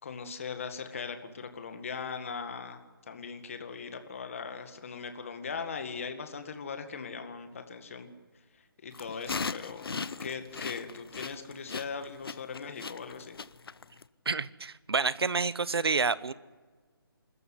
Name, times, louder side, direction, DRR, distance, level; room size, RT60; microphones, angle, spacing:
voice 1, 0.0-2.8 3.1-8.1 8.6-9.9 10.2-13.4, left 5 dB, 35° left, 7 dB, 2.0 m, -39 dB
sound 1, 8.9-14.0, left 5 dB, 70° left, 0.9 m, -38 dB
voice 2, 14.2-16.3, right 4 dB, 80° right, 17 dB, 1.1 m, -28 dB
27.0 x 14.0 x 9.8 m, 1.4 s
hypercardioid pair, 175°, 13 cm